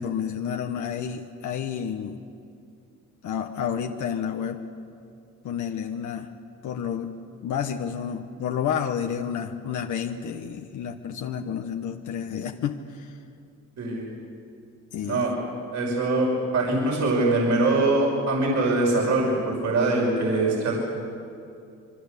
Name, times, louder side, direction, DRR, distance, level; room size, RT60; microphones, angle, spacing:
voice 1, 0.0-2.2 3.2-4.6 5.4-6.3 6.6-7.1 7.4-13.2 14.9-15.4, left 8 dB, 75° left, 4 dB, 1.3 m, -30 dB
voice 2, 13.8-14.1 15.0-15.3 15.7-20.7, right 2 dB, 65° right, -2 dB, 5.9 m, -23 dB
27.5 x 23.5 x 6.9 m, 2.5 s
cardioid pair, 90°, 30 cm